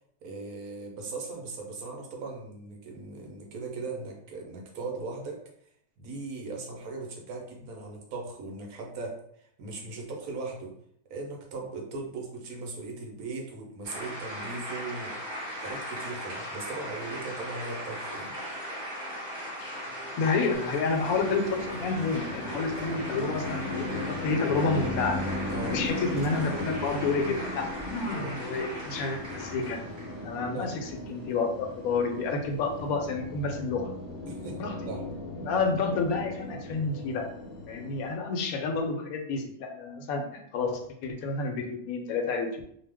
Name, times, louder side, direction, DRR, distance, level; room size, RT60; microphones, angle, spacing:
voice 1, 0.2-5.4 6.0-10.7 11.1-18.3 25.5-25.8 28.1-28.4 30.5-30.8 34.3-35.0, right 3 dB, 85° right, 1 dB, 1.2 m, -39 dB
sound 1, 13.8-30.4, equal, 35° right, 1.2 m, -38 dB
voice 2, 20.2-25.2 25.7-29.8 30.2-33.9 34.6-34.7 35.4-37.3 37.7-42.6, left 4 dB, 75° left, 4 dB, 1.0 m, -30 dB
Train, 20.5-33.1, equal, 5° right, 0.6 m, -49 dB
sound 2, 21.0-38.2, left 1 dB, 55° left, 0.7 m, -37 dB
2.9 x 2.0 x 3.3 m, 0.68 s
omnidirectional pair, 1.5 m